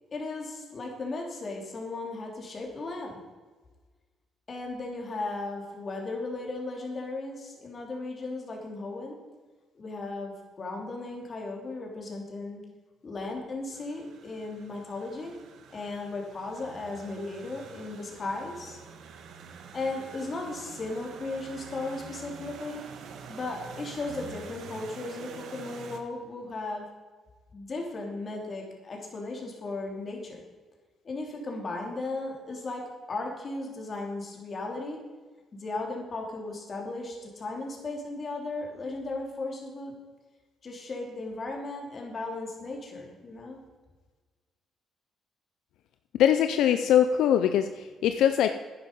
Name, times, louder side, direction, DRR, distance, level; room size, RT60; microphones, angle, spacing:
voice 1, 0.1-3.2 4.5-9.2 9.7-12.6 13.0-15.3 15.7-18.8 19.7-22.8 23.3-26.8 27.5-30.4 31.0-35.0 35.5-39.9 40.6-43.6, left 2 dB, 40° left, 1 dB, 3.2 m, -36 dB
sound 1, 13.7-26.0, right 6 dB, 75° right, 1.4 m, -46 dB
voice 2, 46.1-48.5, left 10 dB, 85° left, 9 dB, 0.5 m, -22 dB
10.5 x 9.9 x 5.4 m, 1.4 s
cardioid pair, 90°, 0 cm